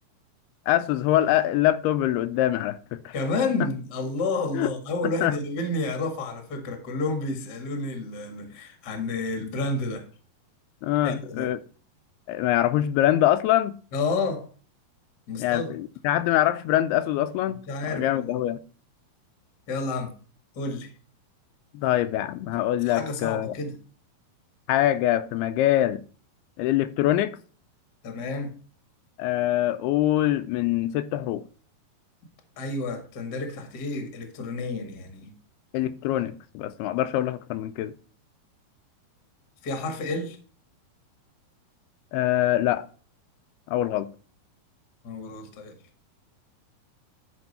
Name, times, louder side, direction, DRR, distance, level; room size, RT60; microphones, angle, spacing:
voice 1, 0.7-3.1 4.5-4.7 5.0-5.3 10.8-11.6 12.3-13.8 15.4-17.6 17.9-18.6 21.7-23.6 24.7-26.0 26.6-27.4 29.2-31.4 35.7-37.9 42.1-42.9 43.7-44.1, left 13 dB, 85° left, 2.5 m, -24 dB
voice 2, 3.1-10.0 11.0-11.5 13.9-14.5 15.3-15.7 17.7-18.3 19.7-20.1 20.5-20.9 22.8-23.8 28.0-28.5 32.6-35.3 39.6-40.4 45.0-45.8, left 3 dB, 40° left, 1.5 m, -30 dB
12.0 x 5.4 x 4.2 m
omnidirectional pair, 4.6 m